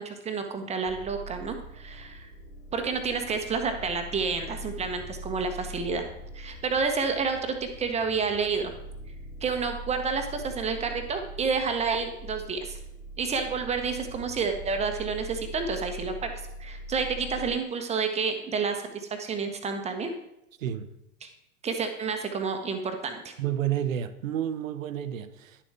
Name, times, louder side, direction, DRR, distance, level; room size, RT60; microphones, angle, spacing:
voice 1, 0.0-2.3 2.7-6.0 6.3-8.7 9.4-12.8 13.2-16.3 16.6-20.1 21.2-21.3 21.6-23.3, right 5 dB, 15° right, 0.9 m, -29 dB
sound 1, 0.8-17.6, right 1 dB, 15° left, 2.0 m, -42 dB
voice 2, 20.6-20.9 23.4-25.6, right 10 dB, 70° right, 0.7 m, -30 dB
10.5 x 7.0 x 3.4 m
figure-of-eight pair, 90°, 42 cm